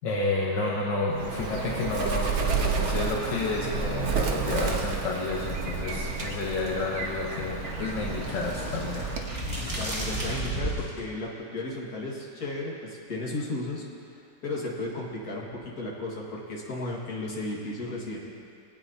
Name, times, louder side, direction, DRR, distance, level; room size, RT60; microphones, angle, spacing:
voice 1, 0.0-9.2, left 3 dB, 80° left, -3 dB, 1.7 m, -30 dB
Bird, 1.1-9.4, right 5 dB, 50° right, 1.0 m, -30 dB
sound 1, 5.3-11.0, right 1 dB, 15° right, 1.9 m, -34 dB
voice 2, 9.8-13.8 14.4-18.2, left 2 dB, 55° left, -3 dB, 2.1 m, -34 dB
20.0 x 9.1 x 2.7 m, 2.4 s
omnidirectional pair, 1.9 m